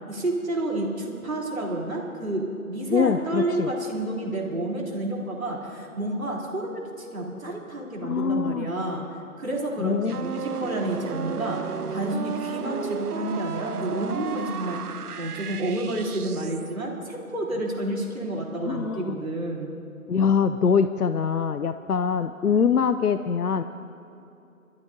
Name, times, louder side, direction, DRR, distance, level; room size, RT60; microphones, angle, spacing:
voice 1, 0.1-9.0 9.4-14.8 15.2-19.7, right 1 dB, 65° right, -2 dB, 3.5 m, -30 dB
voice 2, 2.9-3.7 8.0-8.7 9.8-10.2 18.7-19.2 20.1-23.6, left 6 dB, 80° left, 11 dB, 0.6 m, -23 dB
sound 1, 10.0-16.7, right 7 dB, 90° right, 0.7 m, -34 dB
29.5 x 12.5 x 2.7 m, 2.9 s
figure-of-eight pair, 165°, 44 cm